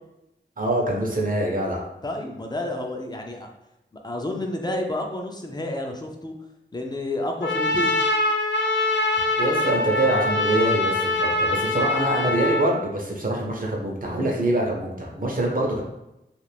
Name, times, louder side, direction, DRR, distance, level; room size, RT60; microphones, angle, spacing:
voice 1, 0.6-1.8 9.4-15.8, right 1 dB, 50° right, -1 dB, 0.8 m, -24 dB
voice 2, 2.0-3.5 4.0-6.3 6.7-8.0, left 1 dB, 20° left, 2 dB, 0.5 m, -30 dB
Trumpet, 7.4-12.7, left 2 dB, 75° left, 0.4 m, -23 dB
2.5 x 2.5 x 3.4 m, 0.90 s
wide cardioid pair, 50°, 19 cm